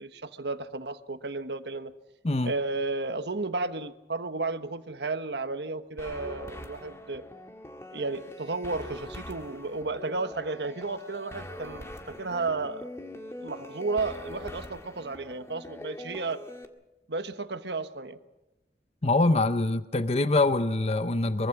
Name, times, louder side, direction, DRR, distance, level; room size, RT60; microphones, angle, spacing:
voice 1, 0.0-1.9 2.4-7.2 7.9-12.9 13.4-16.4 17.1-18.2, right 3 dB, 75° right, 9 dB, 1.3 m, -33 dB
sound 1, 6.0-16.6, left 1 dB, 15° left, 1.8 m, -43 dB
voice 2, 19.0-21.5, left 2 dB, 35° left, 11 dB, 0.7 m, -24 dB
23.5 x 23.5 x 6.0 m, 0.96 s
head